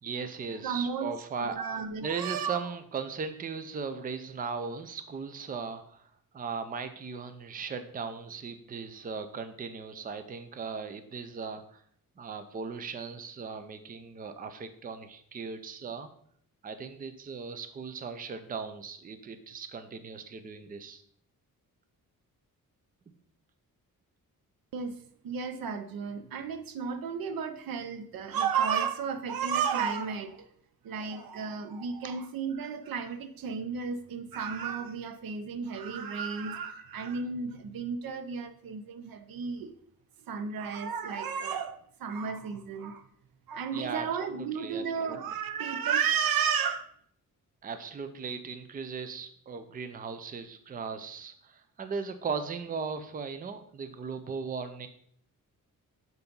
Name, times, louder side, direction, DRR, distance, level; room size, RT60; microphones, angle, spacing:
voice 1, 0.0-1.6 2.0-6.1 6.3-11.8 12.2-16.1 16.6-21.0 37.2-37.3 43.7-44.1 44.3-45.2 47.6-54.9, right 5 dB, 25° right, 0.5 m, -38 dB
voice 2, 0.6-1.1 1.4-2.6 24.7-24.9 25.2-30.5 30.8-39.7 40.3-43.0 43.5-46.9, right 6 dB, 85° right, 0.8 m, -33 dB
6.9 x 4.0 x 5.3 m
wide cardioid pair, 175°, 34 cm